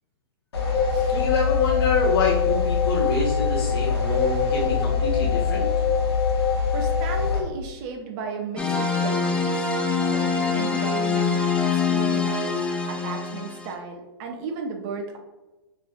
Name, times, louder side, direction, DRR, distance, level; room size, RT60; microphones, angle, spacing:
sound 1, 0.5-7.4, left 5 dB, 90° left, 1.5 m, -23 dB
voice 1, 1.1-5.6, left 4 dB, 65° left, -7 dB, 1.4 m, -26 dB
voice 2, 6.7-12.6 12.9-15.2, right 4 dB, 45° right, 2 dB, 0.7 m, -35 dB
sound 2, 8.6-13.7, left 5 dB, 10° left, 0.6 m, -24 dB
5.3 x 3.9 x 2.5 m, 1.1 s
hypercardioid pair, 130°, 13 cm